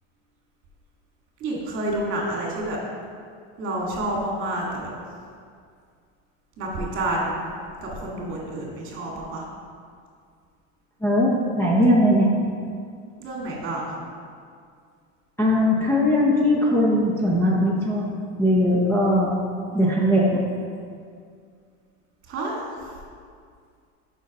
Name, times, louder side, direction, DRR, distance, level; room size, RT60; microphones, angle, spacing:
voice 1, 1.4-2.8 3.6-4.9 6.6-7.4 7.8-9.5 13.2-14.0 19.7-20.2 22.2-22.9, right 1 dB, 40° right, -3 dB, 2.0 m, -29 dB
voice 2, 11.0-12.3 15.4-18.1 18.4-19.3 19.7-20.4, equal, 10° left, -6 dB, 0.7 m, -19 dB
6.2 x 5.4 x 5.4 m, 2.2 s
cardioid pair, 150°, 32 cm